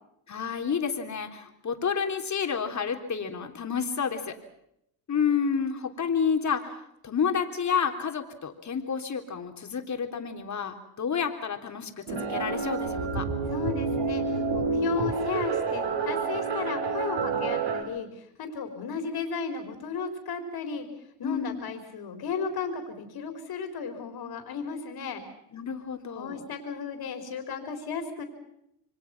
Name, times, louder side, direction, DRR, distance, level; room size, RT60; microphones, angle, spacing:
voice 1, 0.3-4.4 5.1-13.3 21.2-21.7 25.5-26.4, left 6 dB, 35° left, 5 dB, 3.5 m, -30 dB
sound 1, 12.1-17.8, right 4 dB, 65° right, 4.7 m, -28 dB
voice 2, 13.5-20.9 21.2-25.2 26.1-28.2, left 5 dB, 50° left, 5 dB, 4.4 m, -35 dB
27.5 x 24.0 x 6.0 m, 0.79 s
hypercardioid pair, 70°, 47 cm